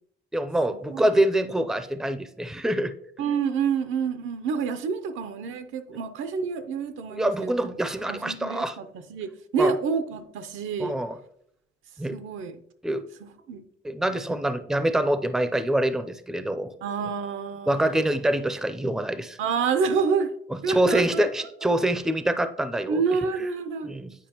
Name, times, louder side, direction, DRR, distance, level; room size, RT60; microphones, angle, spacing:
voice 1, 0.3-2.9 7.1-8.8 9.6-9.7 10.8-11.2 12.0-12.2 12.8-13.0 13.8-16.7 17.7-19.4 20.5-23.0 23.4-23.5 23.8-24.1, right 1 dB, ahead, 11 dB, 0.5 m, -25 dB
voice 2, 3.2-7.5 8.1-10.9 12.1-12.5 13.2-13.6 16.8-18.2 19.4-20.3 20.6-21.3 22.9-23.9, right 5 dB, 80° right, 10 dB, 0.7 m, -28 dB
9.2 x 4.6 x 2.9 m, 0.71 s
cardioid pair, 90°, 20 cm